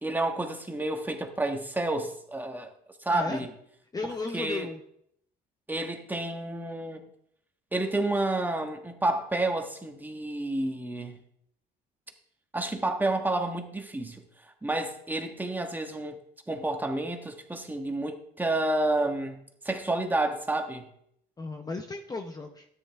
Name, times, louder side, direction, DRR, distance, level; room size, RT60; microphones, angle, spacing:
voice 1, 0.0-2.7 3.0-3.5 4.0-4.7 5.7-7.0 7.7-11.2 12.5-14.2 14.6-16.2 16.5-19.4 19.6-20.9, right 2 dB, 10° right, 4 dB, 1.5 m, -30 dB
voice 2, 3.1-3.5 3.9-4.8 21.4-22.7, left 3 dB, 20° left, 5 dB, 0.8 m, -35 dB
13.0 x 9.9 x 3.5 m, 0.70 s
cardioid pair, 110°, 19 cm